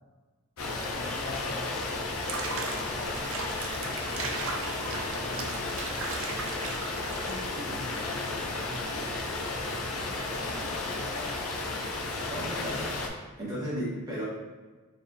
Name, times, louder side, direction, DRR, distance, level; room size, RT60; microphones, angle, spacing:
sound 1, 0.6-13.1, left 2 dB, 85° left, 0.7 m, -33 dB
voice 1, 0.6-1.8 2.2-5.7 7.2-11.4, left 2 dB, 45° left, 0 dB, 0.7 m, -44 dB
Water / Bathtub (filling or washing), 2.1-7.6, right 4 dB, 65° right, 0.6 m, -38 dB
voice 2, 12.3-12.9 13.4-14.3, equal, 15° right, -7 dB, 1.4 m, -34 dB
4.4 x 3.5 x 2.8 m, 1.3 s
head